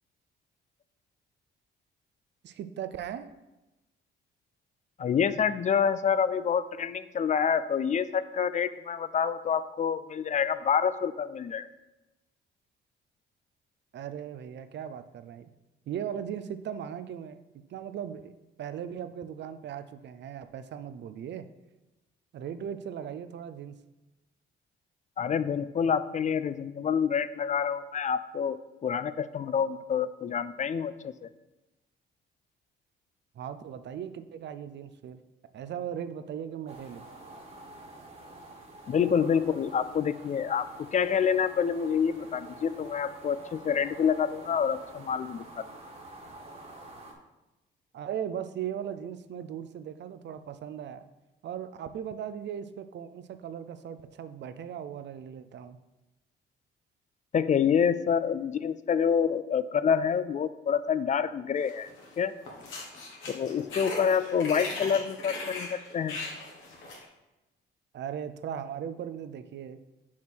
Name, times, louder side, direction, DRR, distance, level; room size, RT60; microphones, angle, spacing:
voice 1, 2.4-3.2 13.9-15.5 15.9-17.4 17.7-21.5 22.3-23.7 33.4-35.2 35.5-37.1 47.9-51.0 51.4-55.8 67.9-69.8, right 9 dB, 60° right, 11 dB, 0.6 m, -38 dB
voice 2, 5.0-11.7 25.2-31.3 38.9-45.4 57.3-61.9 62.2-62.3 63.3-66.2, left 7 dB, 40° left, 14 dB, 0.4 m, -27 dB
sound 1, 36.7-47.1, right 2 dB, 30° right, 1.6 m, -48 dB
sound 2, 61.7-62.1 62.4-67.0, left 2 dB, 80° left, 1.9 m, -38 dB
6.0 x 4.4 x 6.1 m, 1.0 s
cardioid pair, 90°, 20 cm